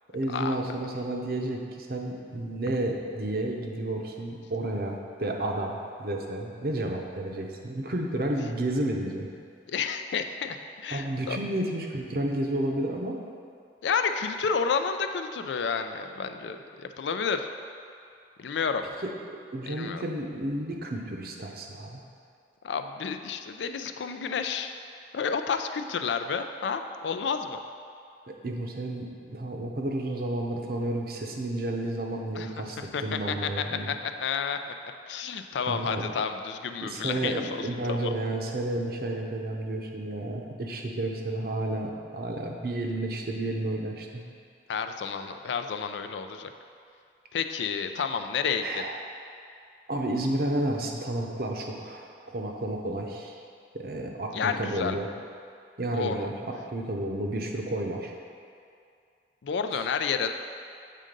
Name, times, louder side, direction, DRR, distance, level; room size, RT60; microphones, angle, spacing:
voice 1, 0.1-9.3 10.9-13.2 19.3-22.0 28.3-34.0 35.7-36.0 36.8-44.2 48.6-48.9 49.9-53.4 53.7-55.1 55.8-58.1 59.7-59.8, right 1 dB, 55° right, 1 dB, 0.7 m, -31 dB
voice 2, 9.7-11.4 13.8-17.5 18.4-18.8 19.7-20.0 22.6-24.7 25.1-27.6 32.3-32.5 32.8-34.6 35.1-38.1 44.7-46.5 47.3-48.8 54.3-55.0 55.9-56.3 59.4-60.3, left 6 dB, 90° left, 8 dB, 0.4 m, -30 dB
7.6 x 3.8 x 5.2 m, 2.4 s
head